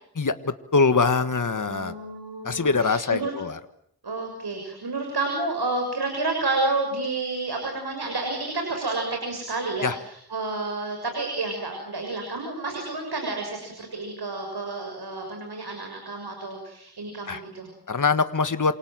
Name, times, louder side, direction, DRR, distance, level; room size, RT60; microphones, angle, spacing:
voice 1, 0.7-1.9 2.4-3.6 9.8-9.9 17.3-17.4 17.9-18.7, left 4 dB, 55° left, 10 dB, 1.6 m, -23 dB
voice 2, 1.5-3.3 4.0-17.7, right 3 dB, 85° right, 3 dB, 6.8 m, -30 dB
28.5 x 27.0 x 7.6 m, 0.70 s
wide cardioid pair, 60°, 38 cm